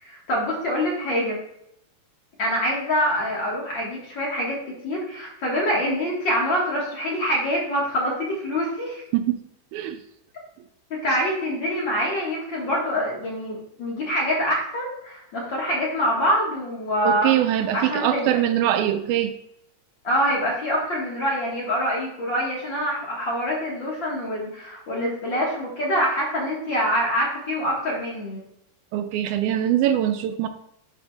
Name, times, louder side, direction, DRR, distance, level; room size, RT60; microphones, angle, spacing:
voice 1, 0.0-1.4 2.4-4.6 4.8-9.0 10.9-17.3 17.7-18.4 20.0-28.4, equal, 45° left, -4 dB, 1.8 m, -25 dB
voice 2, 17.0-19.3 28.9-30.5, right 11 dB, 80° right, 9 dB, 2.0 m, -22 dB
10.5 x 5.7 x 2.3 m, 0.77 s
omnidirectional pair, 3.6 m